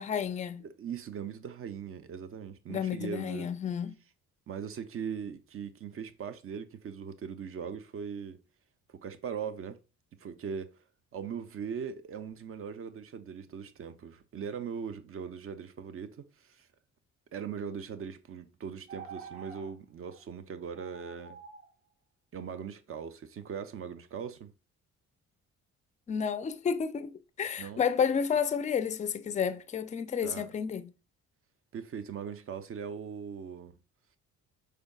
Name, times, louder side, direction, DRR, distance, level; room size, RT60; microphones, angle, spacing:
voice 1, 0.0-0.6 2.7-3.9 26.1-30.9, left 7 dB, 25° left, 0.4 m, -31 dB
voice 2, 0.6-3.5 4.5-8.4 8.9-9.8 10.2-10.8 11.1-16.7 17.3-21.4 22.3-24.5 27.6-27.8 30.2-30.5 31.7-33.8, right 7 dB, 45° right, 0.6 m, -40 dB
sound 1, 18.9-19.7 20.1-20.2 20.7-21.7, right 5 dB, 85° right, 1.5 m, -47 dB
5.0 x 4.4 x 2.3 m
cardioid pair, 90°, 30 cm